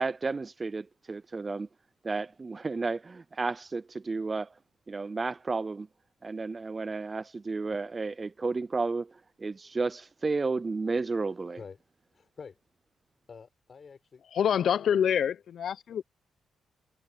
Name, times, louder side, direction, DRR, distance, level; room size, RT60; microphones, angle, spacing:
voice 1, 0.0-1.7 2.0-4.5 4.9-5.9 6.2-11.6, right 3 dB, 25° right, 0.3 m, -32 dB
voice 2, 12.1-12.6 13.3-14.3 14.8-15.0, left 5 dB, 45° left, 4.4 m, -47 dB
voice 3, 14.3-16.0, left 8 dB, 65° left, 0.7 m, -26 dB
cardioid pair, 105°, 0 cm